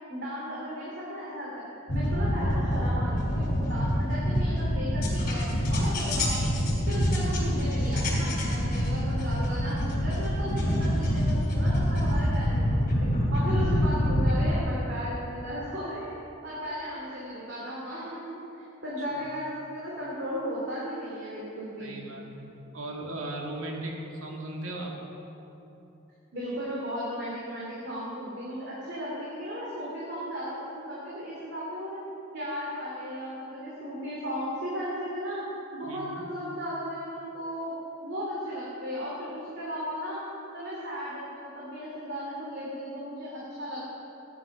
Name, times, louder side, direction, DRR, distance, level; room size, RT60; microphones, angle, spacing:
voice 1, 0.1-6.5 6.9-12.9 13.3-16.1 16.4-22.0 26.3-32.0 32.3-35.4 35.7-37.7 38.0-40.2 40.5-43.8, equal, 55° right, -6 dB, 2.8 m, -35 dB
sound 1, 1.9-14.6, equal, 45° left, 3.7 m, -26 dB
voice 2, 21.8-24.9 35.8-36.2, right 1 dB, 75° right, 0 dB, 2.3 m, -37 dB
16.5 x 10.0 x 6.0 m, 3.0 s
head